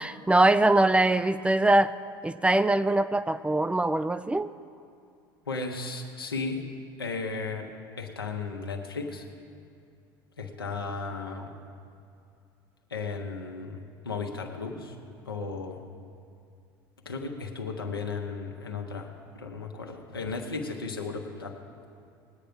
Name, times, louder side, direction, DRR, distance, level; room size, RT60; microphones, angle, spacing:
voice 1, 0.0-2.0 2.2-4.5, right 2 dB, 10° right, 14 dB, 0.4 m, -22 dB
voice 2, 5.5-6.6 7.0-7.7 8.0-9.2 10.4-11.6 12.9-13.8 14.0-15.0 15.2-15.8 17.0-21.6, left 4 dB, 90° left, 1 dB, 1.2 m, -35 dB
20.0 x 8.8 x 5.2 m, 2.5 s
hypercardioid pair, 75°, 12 cm